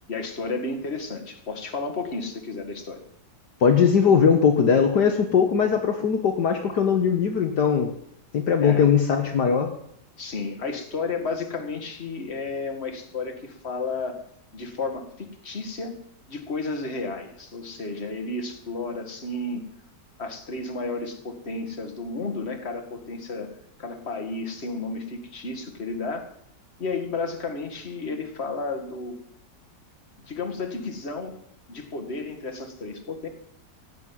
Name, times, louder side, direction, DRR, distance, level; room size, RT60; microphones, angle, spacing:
voice 1, 0.1-3.0 8.6-8.9 10.2-14.2 14.5-16.0 16.3-19.7 20.2-23.5 23.8-26.3 26.8-29.2 30.2-31.3 31.7-33.3, left 3 dB, 35° left, 4 dB, 2.2 m, -32 dB
voice 2, 3.6-7.9 8.3-9.7, left 6 dB, 65° left, 5 dB, 1.8 m, -20 dB
16.0 x 7.6 x 9.4 m, 0.70 s
omnidirectional pair, 2.0 m